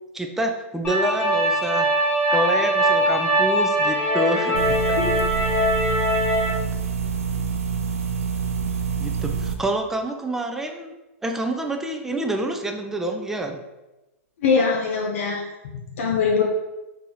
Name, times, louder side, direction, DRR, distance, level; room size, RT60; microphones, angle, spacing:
voice 1, 0.1-1.9 2.3-5.0 9.0-10.9 11.2-13.6, right 1 dB, 5° right, 3 dB, 0.3 m, -27 dB
sound 1, 0.8-6.5, equal, 15° left, 0.8 m, -21 dB
sound 2, 4.5-9.5, right 6 dB, 85° right, 0.4 m, -26 dB
voice 2, 14.4-15.4 15.9-16.4, left 5 dB, 70° left, 0 dB, 0.5 m, -22 dB
2.8 x 2.6 x 3.9 m, 1.0 s
hypercardioid pair, 130°, 8 cm